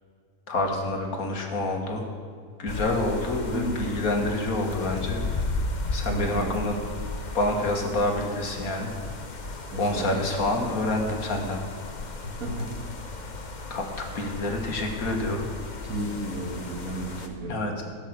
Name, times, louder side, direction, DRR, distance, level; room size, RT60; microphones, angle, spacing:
voice 1, 0.5-2.0 2.6-5.2 5.9-6.8 7.3-8.9 9.8-11.6 13.7-15.5 17.5-17.8, left 2 dB, 65° left, 2 dB, 2.0 m, -27 dB
sound 1, 2.7-17.3, left 3 dB, 35° left, 1.0 m, -35 dB
voice 2, 6.1-6.6 9.7-10.2 12.4-12.7 15.8-17.7, right 1 dB, 60° right, 0 dB, 2.6 m, -33 dB
16.5 x 6.6 x 7.9 m, 2.1 s
omnidirectional pair, 1.6 m